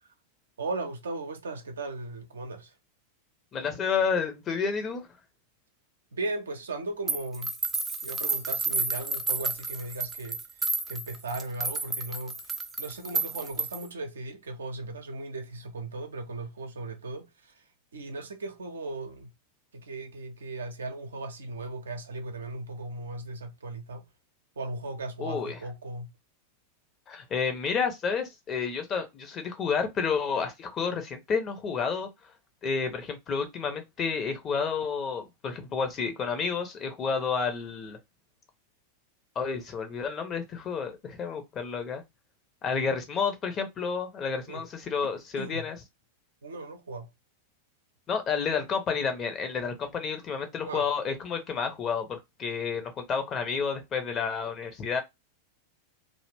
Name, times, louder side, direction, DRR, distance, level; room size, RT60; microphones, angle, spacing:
voice 1, 0.6-2.7 6.1-7.5 8.0-10.4 10.9-12.4 12.8-17.5 17.9-19.3 19.7-24.1 24.6-26.1 44.5-44.7 45.4-45.6 46.4-47.1 50.6-50.9, right 2 dB, 70° right, 0.6 m, -37 dB
voice 2, 3.5-5.1 25.2-25.6 27.1-32.1 32.6-38.0 39.4-42.0 42.6-45.8 48.1-55.0, left 5 dB, 30° left, 0.7 m, -30 dB
sound 1, 7.1-13.9, right 3 dB, 15° right, 0.4 m, -31 dB
2.4 x 2.1 x 3.2 m
figure-of-eight pair, 90°, 0 cm